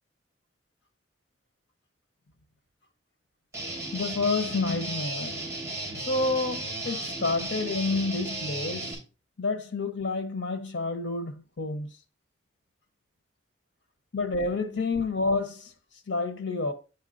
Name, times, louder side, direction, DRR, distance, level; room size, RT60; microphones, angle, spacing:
Guitar, 3.5-8.9, right 2 dB, 15° right, 2.9 m, -35 dB
voice 1, 3.9-5.4 6.0-8.9 9.4-11.9 14.1-15.7 16.1-16.7, left 3 dB, 90° left, 1.1 m, -29 dB
8.2 x 5.7 x 2.6 m
head